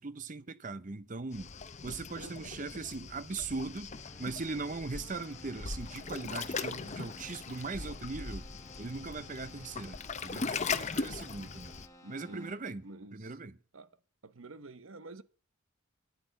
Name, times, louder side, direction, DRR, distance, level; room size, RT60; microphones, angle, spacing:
voice 1, 0.0-1.5 1.8-3.9 4.2-8.5 8.8-11.8 12.1-12.9 13.1-13.6, right 3 dB, 35° right, 0.6 m, -40 dB
Waves surf, 1.3-11.9, left 4 dB, 30° left, 0.7 m, -39 dB
voice 2, 2.2-2.5 12.0-13.4 13.7-13.9 14.2-15.2, right 2 dB, 70° right, 0.9 m, -49 dB
Keyboard (musical), 3.9-12.9, equal, 15° left, 1.9 m, -56 dB
10.5 x 8.0 x 9.3 m
head